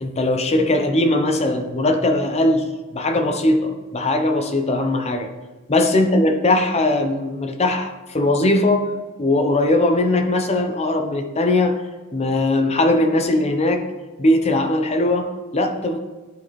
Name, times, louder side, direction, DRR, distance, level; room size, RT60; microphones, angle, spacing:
voice 1, 0.0-5.3 5.7-8.9 9.2-11.8 12.1-13.9 14.2-16.0, left 1 dB, 30° left, 5 dB, 0.7 m, -20 dB
11.5 x 4.2 x 3.1 m, 1.2 s
head